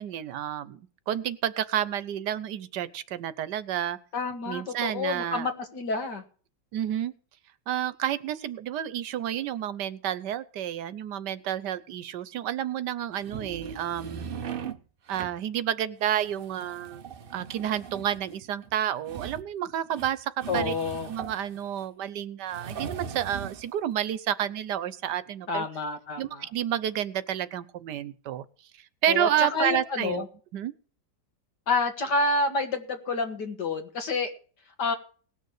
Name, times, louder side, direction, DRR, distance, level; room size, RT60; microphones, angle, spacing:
voice 1, 0.0-4.0 4.5-5.5 6.7-7.1 7.7-14.3 15.1-17.0 17.3-20.7 21.1-25.7 26.2-28.4 29.0-30.3 30.5-30.7, right 10 dB, 80° right, 16 dB, 1.4 m, -30 dB
voice 2, 4.1-6.2 20.5-21.1 25.5-26.4 29.1-30.2 31.7-34.3 34.8-34.9, left 3 dB, 75° left, 6 dB, 2.6 m, -28 dB
sound 1, 13.1-14.8 15.1-15.4 16.0-21.8 22.5-23.7, right 7 dB, 50° right, 0.7 m, -39 dB
19.0 x 6.6 x 6.5 m, 0.41 s
omnidirectional pair, 1.8 m